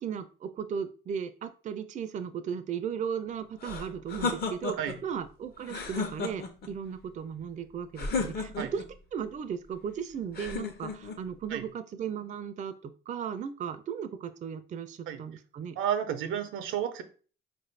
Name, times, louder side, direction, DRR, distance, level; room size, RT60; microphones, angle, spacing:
voice 1, 0.0-8.8 9.1-15.8, right 7 dB, 40° right, 9 dB, 0.4 m, -36 dB
sound 1, 3.6-5.0 5.6-6.7 8.0-8.9 10.3-11.2, left 4 dB, 55° left, 0.7 m, -33 dB
voice 2, 15.8-17.0, right 9 dB, 85° right, 9 dB, 0.6 m, -31 dB
4.3 x 2.5 x 3.2 m, 0.38 s
cardioid pair, 90°, 20 cm